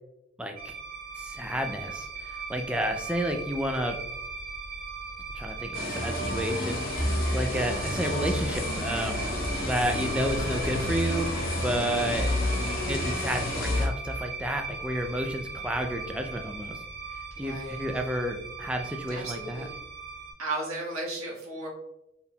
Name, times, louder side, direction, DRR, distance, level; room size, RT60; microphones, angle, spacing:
voice 1, 0.4-0.7 1.2-4.0 5.3-6.8 7.3-9.3 9.6-11.3 11.6-12.3 12.9-16.8 17.4-19.7, right 1 dB, 5° right, 4 dB, 0.3 m, -31 dB
sound 1, 0.6-20.3, right 4 dB, 40° right, 1.1 m, -38 dB
sound 2, 5.7-13.9, left 1 dB, 40° left, 0.8 m, -30 dB
voice 2, 17.4-17.8 19.1-19.7 20.4-21.7, right 2 dB, 80° right, -3 dB, 1.4 m, -35 dB
4.5 x 3.4 x 2.2 m, 0.87 s
head